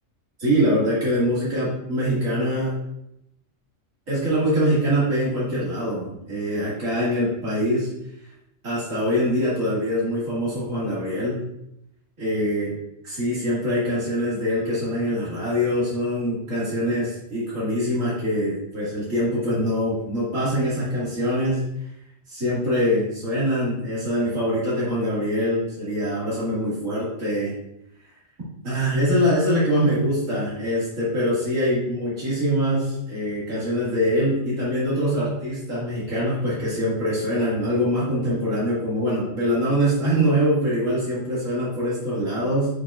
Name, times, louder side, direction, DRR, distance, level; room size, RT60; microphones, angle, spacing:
voice 1, 0.4-2.7 4.1-7.9 8.6-11.4 12.2-12.7 13.0-21.6 22.3-27.5 28.6-42.7, equal, 85° right, -8 dB, 2.6 m, -23 dB
8.2 x 4.8 x 2.4 m, 0.81 s
omnidirectional pair, 1.3 m